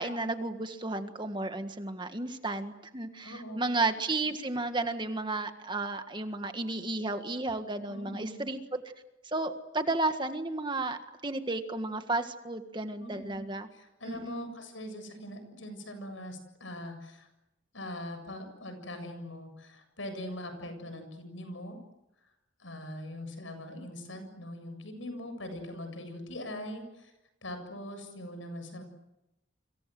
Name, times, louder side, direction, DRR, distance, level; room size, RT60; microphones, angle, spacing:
voice 1, 0.0-8.8 9.3-13.7 14.1-14.5, right 2 dB, 25° right, 7 dB, 1.7 m, -33 dB
voice 2, 3.2-3.6 7.9-8.5 13.0-13.4 13.7-17.3 17.7-21.8 22.6-27.1 27.4-28.8, left 1 dB, 85° left, 8 dB, 7.5 m, -41 dB
29.5 x 26.0 x 7.8 m, 0.94 s
head